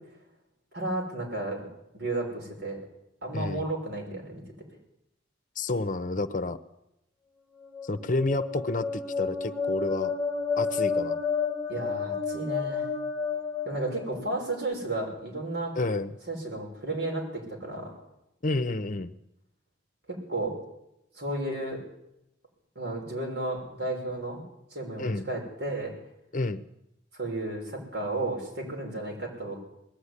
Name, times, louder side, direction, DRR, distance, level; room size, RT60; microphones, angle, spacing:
voice 1, 0.7-1.6 1.9-2.8 3.2-4.4 11.7-12.9 13.6-15.7 16.3-17.9 20.1-20.6 21.2-21.8 22.8-24.4 24.7-25.9 27.1-29.6, right 2 dB, 65° right, 1 dB, 6.0 m, -33 dB
voice 2, 3.3-3.7 5.6-6.6 7.8-10.1 10.6-11.2 15.7-16.1 18.4-19.1 25.0-25.3 26.3-26.6, left 2 dB, 45° left, 12 dB, 0.8 m, -30 dB
sound 1, 7.6-14.5, left 5 dB, 10° left, 1.8 m, -31 dB
20.0 x 13.5 x 9.8 m, 0.85 s
head